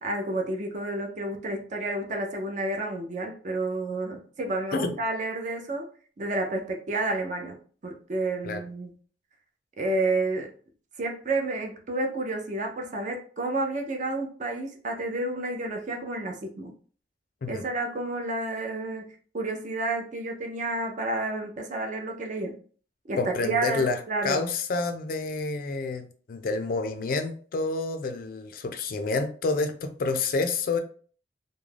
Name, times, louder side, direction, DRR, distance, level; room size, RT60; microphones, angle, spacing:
voice 1, 0.0-5.9 6.2-7.6 7.8-8.9 9.8-10.5 11.0-16.7 17.5-19.1 19.3-22.6 23.1-24.4, right 2 dB, 45° right, 3 dB, 0.5 m, -30 dB
voice 2, 23.2-30.8, left 3 dB, 50° left, 8 dB, 0.4 m, -29 dB
2.3 x 2.1 x 3.2 m, 0.43 s
head